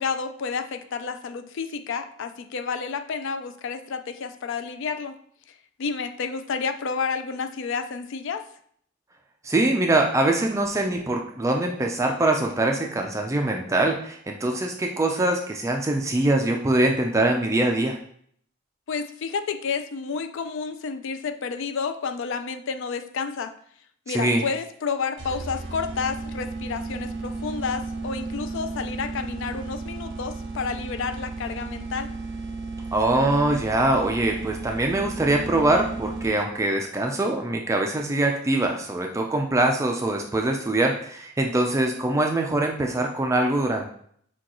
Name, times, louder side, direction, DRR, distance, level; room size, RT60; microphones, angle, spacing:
voice 1, 0.0-5.1 5.8-8.4 18.9-23.5 24.1-32.1, left 5 dB, 60° left, 9 dB, 0.4 m, -30 dB
voice 2, 9.4-18.0 24.1-24.4 32.9-43.9, right 2 dB, 15° right, 2 dB, 0.3 m, -23 dB
sound 1, 25.2-36.6, right 3 dB, 60° right, 0.6 m, -34 dB
6.1 x 2.3 x 2.9 m, 0.63 s
head